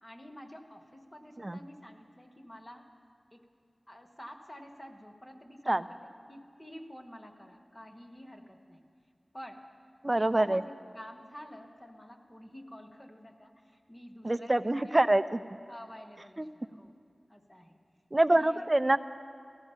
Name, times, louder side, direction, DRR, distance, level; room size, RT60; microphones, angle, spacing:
voice 1, 0.0-2.9 3.3-3.5 3.9-6.0 6.3-8.8 9.3-9.7 10.0-15.0 15.7-16.9 17.3-17.8 18.3-18.7, equal, 20° left, 4 dB, 1.3 m, -49 dB
voice 2, 10.0-10.6 14.2-15.4 16.4-16.5 18.1-19.0, right 1 dB, 30° right, 12 dB, 0.5 m, -25 dB
15.5 x 14.0 x 5.6 m, 2.3 s
wide cardioid pair, 70°, 0 cm